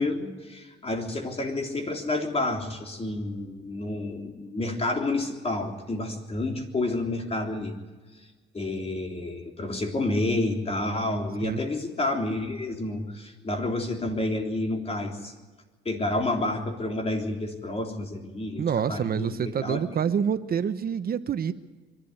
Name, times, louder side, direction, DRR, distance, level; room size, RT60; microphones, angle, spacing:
voice 1, 0.0-7.7 8.5-15.3 15.9-18.6 18.9-19.4 19.6-19.8, left 2 dB, 30° left, 2 dB, 3.6 m, -29 dB
voice 2, 18.6-21.5, right 7 dB, 50° right, 11 dB, 0.9 m, -27 dB
24.0 x 12.0 x 9.8 m, 1.3 s
cardioid pair, 90°, 20 cm